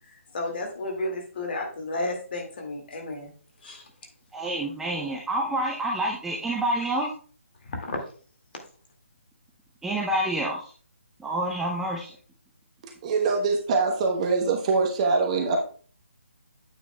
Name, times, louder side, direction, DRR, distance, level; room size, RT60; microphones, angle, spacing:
voice 1, 0.3-3.3 3.6-3.8 7.6-8.0, left 2 dB, 45° left, 3 dB, 2.1 m, -32 dB
voice 2, 4.3-7.1 9.8-10.7 11.2-12.1, right 1 dB, 5° right, -2 dB, 0.6 m, -28 dB
voice 3, 12.8-15.6, right 4 dB, 30° right, 3 dB, 1.0 m, -24 dB
8.9 x 6.9 x 2.3 m, 0.42 s
figure-of-eight pair, 145°, 7 cm